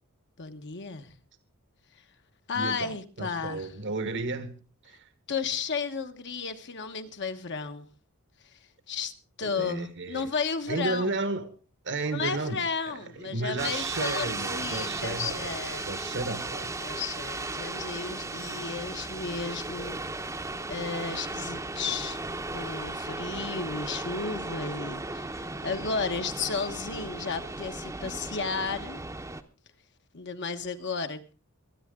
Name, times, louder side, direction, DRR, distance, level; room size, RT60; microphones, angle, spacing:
voice 1, 0.4-1.1 2.5-3.7 5.3-7.9 8.9-9.1 9.4-11.2 12.1-15.8 16.8-20.0 20.7-22.2 22.5-29.0 30.1-31.3, left 5 dB, 55° left, 1.3 m, -33 dB
voice 2, 2.5-4.5 4.8-5.1 9.4-10.3 10.7-11.5 11.8-16.7, right 3 dB, 55° right, 1.3 m, -33 dB
sound 1, 13.6-29.4, right 2 dB, 15° right, 0.9 m, -36 dB
24.0 x 9.8 x 3.8 m
head